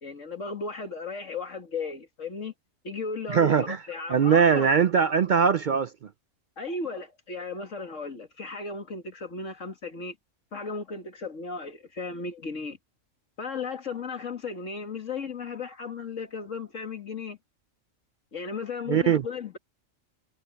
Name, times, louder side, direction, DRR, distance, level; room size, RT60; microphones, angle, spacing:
voice 1, 0.0-2.5 2.8-4.7 6.6-10.2 10.5-12.8 13.4-17.4 18.3-19.6, left 4 dB, 70° left, 2.3 m, -35 dB
voice 2, 3.3-3.8 4.1-5.9 18.9-19.2, right 7 dB, 60° right, 0.5 m, -21 dB
omnidirectional pair, 1.4 m